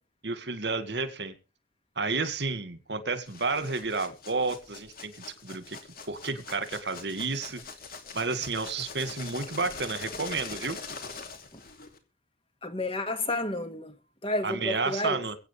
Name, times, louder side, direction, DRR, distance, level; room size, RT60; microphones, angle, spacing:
voice 1, 0.2-1.3 2.0-5.8 6.1-7.6 8.1-10.8 14.4-15.4, right 3 dB, 70° right, 2.1 m, -31 dB
sound 1, 3.2-12.0, left 4 dB, 55° left, 2.7 m, -43 dB
voice 2, 12.6-14.0 14.2-15.3, left 2 dB, 30° left, 2.0 m, -31 dB
23.0 x 9.0 x 3.4 m
head